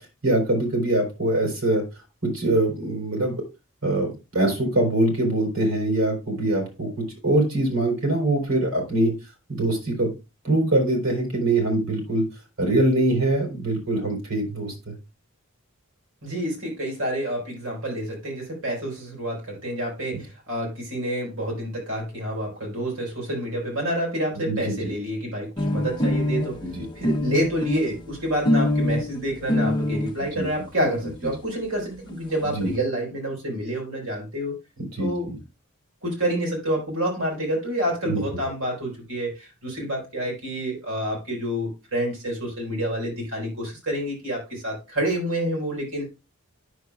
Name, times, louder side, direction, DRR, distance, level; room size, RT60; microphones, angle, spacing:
voice 1, 0.2-1.8 2.2-3.4 3.8-6.9 7.2-9.1 9.5-10.1 10.4-12.2 12.6-14.7 24.5-24.8 26.6-26.8 30.2-30.5 32.5-32.7 35.0-35.4 38.0-38.2, right 1 dB, 70° right, 1 dB, 3.7 m, -23 dB
voice 2, 16.2-26.6 26.9-34.6 35.0-35.3 36.0-46.1, equal, 85° right, -1 dB, 4.3 m, -28 dB
sound 1, 25.6-30.1 31.0-31.1 31.3-31.4 31.7-31.8 32.0-32.6, left 1 dB, 20° left, 0.8 m, -25 dB
9.4 x 6.5 x 2.3 m, 0.26 s
head